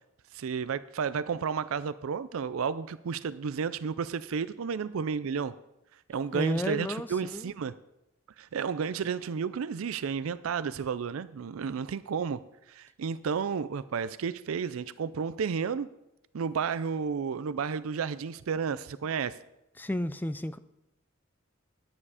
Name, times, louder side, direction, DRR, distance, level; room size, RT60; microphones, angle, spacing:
voice 1, 0.3-5.5 6.1-7.7 8.4-12.4 12.7-15.9 16.3-19.4, right 6 dB, 75° right, 0.4 m, -32 dB
voice 2, 6.3-7.5 19.8-20.6, left 1 dB, 10° left, 0.4 m, -32 dB
11.0 x 9.8 x 4.9 m
head